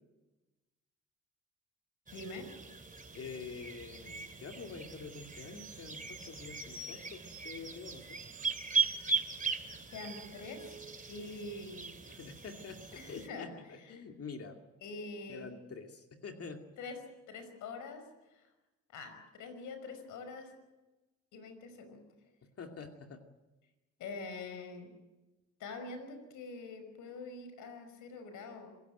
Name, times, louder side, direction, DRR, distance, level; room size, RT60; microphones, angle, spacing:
voice 1, 2.1-2.5 9.9-10.8 11.1-11.9 13.0-13.5 13.9-14.0 14.8-15.5 16.8-17.0 17.3-18.1 18.3-18.5 18.9-20.5 21.3-22.0 24.0-24.9 25.6-28.7, left 3 dB, 80° left, 8 dB, 5.6 m, -45 dB
sound 1, 2.1-13.3, right 5 dB, 25° right, 2.7 m, -39 dB
voice 2, 3.1-8.2 12.1-14.6 15.3-16.7 22.4-23.2, left 5 dB, 50° left, 4 dB, 2.4 m, -47 dB
26.5 x 16.5 x 9.2 m, 1.1 s
cardioid pair, 90°, 30 cm